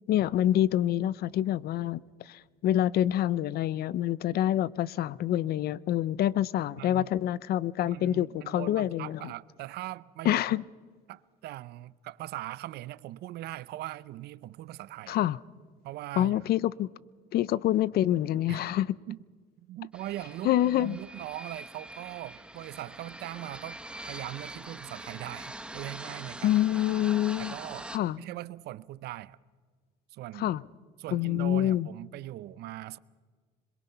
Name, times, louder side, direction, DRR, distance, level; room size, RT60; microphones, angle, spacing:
voice 1, 0.1-9.2 10.2-10.6 15.1-15.4 16.2-16.9 17.3-18.9 20.4-21.0 26.4-27.5 27.9-28.2 30.4-30.6 31.1-31.9, left 12 dB, 65° left, 0.6 m, -26 dB
voice 2, 6.8-7.1 7.8-10.6 11.1-15.2 15.8-16.4 18.5-18.6 19.1-19.2 19.6-26.6 27.4-27.9 28.2-29.4 30.1-30.5 31.0-33.0, right 15 dB, 75° right, 0.7 m, -40 dB
sound 1, 19.9-28.0, right 1 dB, 5° right, 1.2 m, -43 dB
26.5 x 22.0 x 5.6 m
cardioid pair, 110°, 17 cm